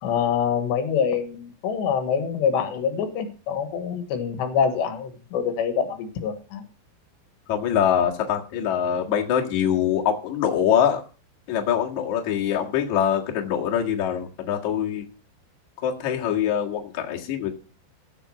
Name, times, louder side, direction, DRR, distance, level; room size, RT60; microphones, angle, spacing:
voice 1, 0.0-6.6, left 7 dB, 80° left, 8 dB, 3.7 m, -25 dB
voice 2, 7.5-11.0 11.5-15.1 15.8-17.5, left 9 dB, 50° left, 0 dB, 2.6 m, -24 dB
15.0 x 6.9 x 6.0 m, 0.37 s
omnidirectional pair, 5.1 m